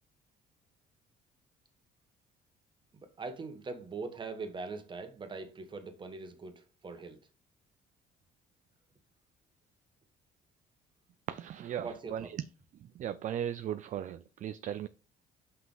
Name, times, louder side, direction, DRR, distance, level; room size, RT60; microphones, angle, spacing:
voice 1, 3.2-7.2 11.8-12.3, right 4 dB, 30° right, 1.4 m, -42 dB
voice 2, 11.3-12.4 13.0-14.9, right 10 dB, 50° right, 0.4 m, -37 dB
5.9 x 5.6 x 3.9 m
cardioid pair, 110°, 17 cm